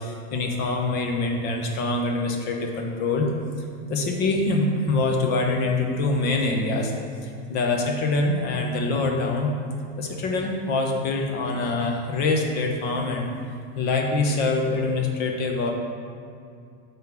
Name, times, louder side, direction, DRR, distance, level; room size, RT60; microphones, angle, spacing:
voice 1, 0.0-3.3 3.9-6.9 7.5-9.5 10.0-13.3 13.8-15.7, left 3 dB, 35° left, 2 dB, 1.0 m, -24 dB
9.4 x 3.8 x 5.9 m, 2.4 s
supercardioid pair, 165°, 29 cm